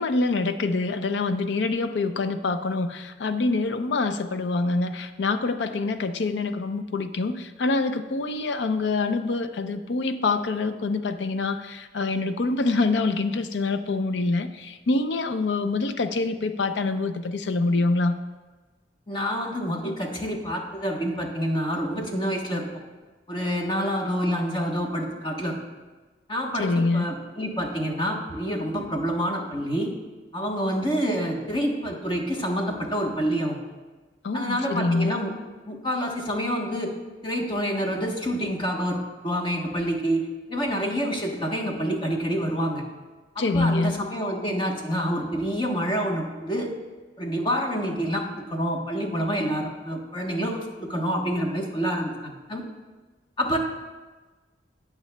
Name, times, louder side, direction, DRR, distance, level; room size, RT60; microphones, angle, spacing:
voice 1, 0.0-18.1 26.6-27.2 34.2-35.1 43.4-44.1, left 3 dB, 75° left, 10 dB, 0.5 m, -25 dB
voice 2, 19.1-22.7 23.3-25.6 26.3-29.9 30.3-33.6 34.3-35.3 35.7-36.9 37.2-42.8 43.3-46.7 47.2-52.6 53.4-53.6, equal, 30° left, 1 dB, 1.1 m, -27 dB
16.0 x 6.0 x 2.2 m, 1.3 s
head